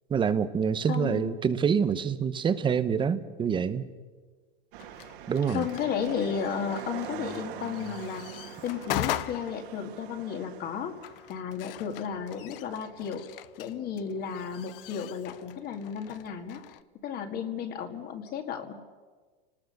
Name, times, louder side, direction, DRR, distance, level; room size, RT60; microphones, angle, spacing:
voice 1, 0.1-3.9 5.3-5.7, right 7 dB, 15° right, 13 dB, 0.9 m, -26 dB
voice 2, 0.9-1.3 5.5-8.3 8.6-11.0 11.3-13.2 13.6-16.6 17.0-18.7, left 7 dB, 30° left, 5 dB, 2.2 m, -33 dB
sound 1, 4.7-11.4, right 11 dB, 55° right, 2.6 m, -43 dB
sound 2, 4.8-16.8, left 14 dB, 60° left, 0.9 m, -41 dB
29.5 x 19.5 x 6.7 m, 1.4 s
supercardioid pair, 140°, 31 cm